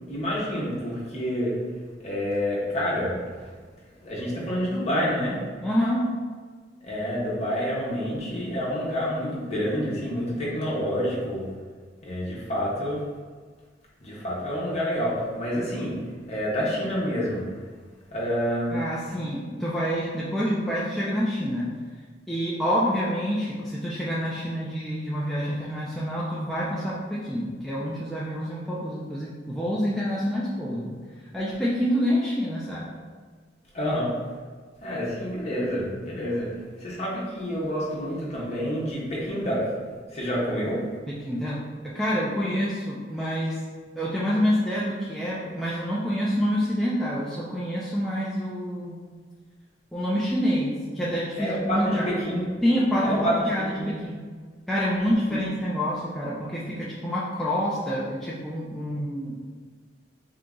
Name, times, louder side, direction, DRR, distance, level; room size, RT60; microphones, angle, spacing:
voice 1, 0.1-1.5 2.0-3.5 4.0-5.4 6.8-11.5 12.0-13.0 14.0-15.9 16.3-17.5 18.1-18.8 33.7-34.2 34.8-36.5 36.8-40.8 51.4-52.6 53.0-53.5 53.8-53.9 55.3-55.4, equal, 35° left, -6 dB, 1.1 m, -28 dB
voice 2, 5.6-6.1 18.7-21.7 22.3-30.9 31.3-32.9 41.1-41.6 41.9-43.6 44.0-49.0 49.9-52.1 52.6-54.2 54.7-59.4, equal, ahead, -8 dB, 0.4 m, -27 dB
3.7 x 2.8 x 3.6 m, 1.5 s
head